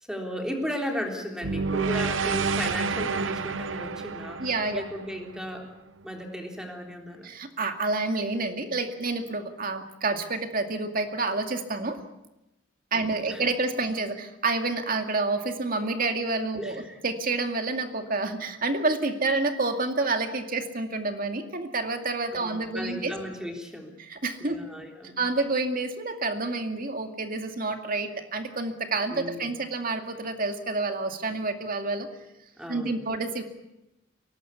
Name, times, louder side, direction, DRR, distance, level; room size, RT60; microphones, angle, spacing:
voice 1, 0.1-5.7 6.0-7.3 12.9-13.4 16.6-17.0 19.3-19.5 22.3-24.0 24.4-25.2 29.1-29.5 32.6-33.0, equal, 5° right, 2 dB, 3.6 m, -35 dB
sound 1, 1.4-5.7, right 4 dB, 85° right, 0.8 m, -29 dB
voice 2, 4.4-4.8 7.2-12.0 12.9-23.1 24.0-24.6 25.2-32.1 32.7-33.4, right 3 dB, 45° right, 6 dB, 2.3 m, -29 dB
23.5 x 18.5 x 8.4 m, 0.93 s
head